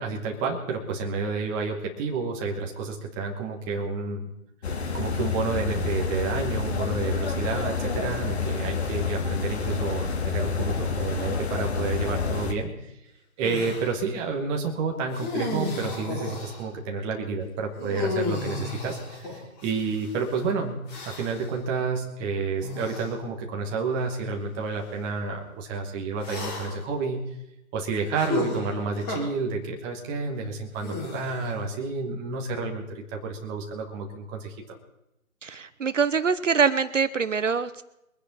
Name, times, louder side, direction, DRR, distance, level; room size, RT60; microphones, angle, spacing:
voice 1, 0.0-4.3 4.9-12.7 13.4-20.8 21.0-27.2 27.7-34.5, right 4 dB, 10° right, 2 dB, 1.3 m, -30 dB
sound 1, 4.6-12.5, left 5 dB, 50° left, 2.1 m, -28 dB
sound 2, 13.4-13.9 15.1-16.7 17.8-20.1 20.9-21.5 22.6-23.1 24.0-24.1 26.2-26.9 28.1-29.2 30.8-31.6, left 3 dB, 20° left, 3.3 m, -33 dB
voice 2, 35.4-37.8, right 5 dB, 60° right, 13 dB, 0.9 m, -24 dB
23.0 x 10.0 x 4.2 m, 0.86 s
figure-of-eight pair, 150°, 42 cm